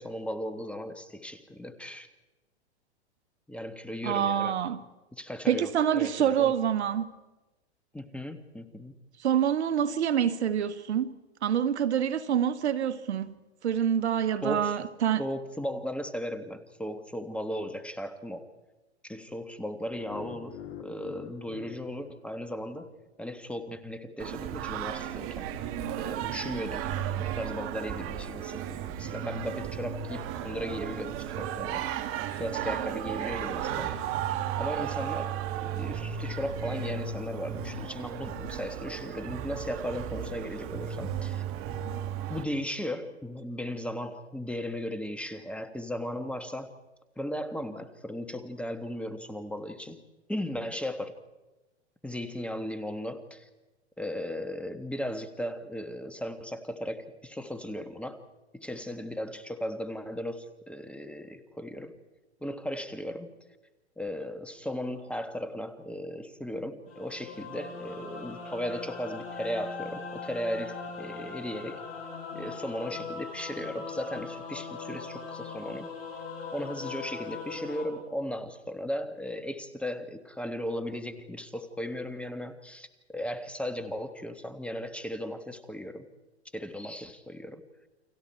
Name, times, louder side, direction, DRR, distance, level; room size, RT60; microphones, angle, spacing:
voice 1, 0.0-2.1 3.5-4.6 5.1-6.5 7.9-8.9 14.4-14.8 15.2-18.5 19.0-22.9 23.2-25.5 25.9-34.0 34.6-41.4 42.3-46.7 47.2-50.0 50.3-51.1 52.0-53.5 54.0-58.2 58.5-61.9 62.4-63.4 64.0-71.8 72.3-75.9 76.5-86.1 86.5-87.6, equal, 5° left, 1.4 m, -36 dB
voice 2, 4.0-4.8 5.5-7.1 9.2-11.1 11.4-13.3 13.6-15.2, right 9 dB, 75° right, 1.5 m, -26 dB
sound 1, 19.9-23.0, left 9 dB, 55° left, 2.1 m, -46 dB
Singing, 24.2-42.4, right 9 dB, 40° right, 1.9 m, -34 dB
sound 2, 66.9-77.9, left 4 dB, 40° left, 6.5 m, -40 dB
30.0 x 24.0 x 4.6 m
hypercardioid pair, 115°, 34 cm